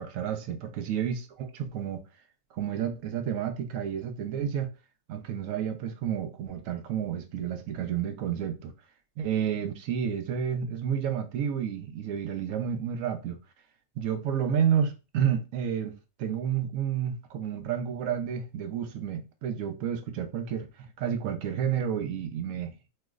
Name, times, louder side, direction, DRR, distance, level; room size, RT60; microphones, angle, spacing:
voice 1, 0.0-2.0 2.5-4.7 5.1-8.7 9.2-13.4 14.0-22.9, right 8 dB, 70° right, 0.9 m, -30 dB
3.1 x 2.0 x 3.5 m
omnidirectional pair, 1.5 m